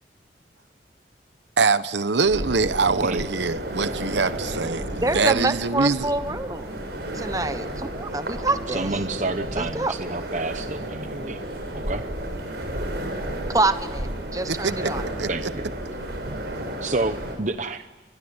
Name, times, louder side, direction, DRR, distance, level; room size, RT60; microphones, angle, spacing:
voice 1, 1.6-6.1 14.5-14.9 15.2-15.5, right 4 dB, 80° right, 13 dB, 1.0 m, -23 dB
sound 1, 2.2-17.4, right 1 dB, 65° right, 6.6 m, -32 dB
voice 2, 5.0-6.8 7.1-8.9 9.6-9.9 13.5-15.1, right 2 dB, 20° right, 10 dB, 1.1 m, -26 dB
voice 3, 8.7-11.4 11.7-12.0 15.3-15.7 16.8-17.9, right 2 dB, 40° right, 9 dB, 0.8 m, -29 dB
25.0 x 21.0 x 9.8 m, 1.2 s
head